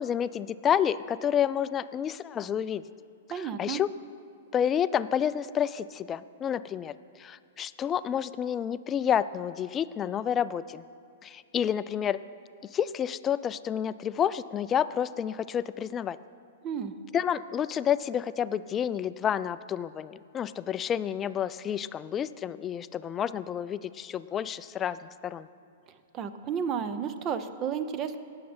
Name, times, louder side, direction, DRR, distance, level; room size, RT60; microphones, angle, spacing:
voice 1, 0.0-2.8 3.6-3.9 4.5-6.9 7.2-10.8 11.2-12.2 12.7-16.2 17.1-25.5, left 9 dB, 25° left, 15 dB, 0.4 m, -29 dB
voice 2, 3.3-3.8 16.6-16.9 26.1-28.2, right 7 dB, 35° right, 12 dB, 0.7 m, -32 dB
18.5 x 6.7 x 4.3 m, 2.5 s
hypercardioid pair, 115°, 0 cm